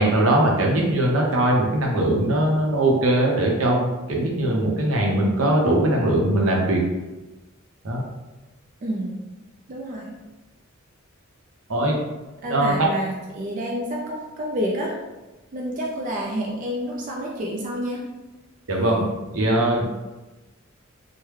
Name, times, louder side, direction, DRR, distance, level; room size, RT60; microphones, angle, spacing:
voice 1, 0.0-6.8 7.8-8.0 11.7-12.0 12.5-12.9 18.7-19.0 19.3-20.1, right 1 dB, 75° right, -1 dB, 0.7 m, -20 dB
voice 2, 8.8-9.2 9.7-10.2 12.4-15.0 15.5-18.1, equal, 40° right, -2 dB, 0.4 m, -29 dB
3.3 x 2.1 x 3.1 m, 1.1 s
head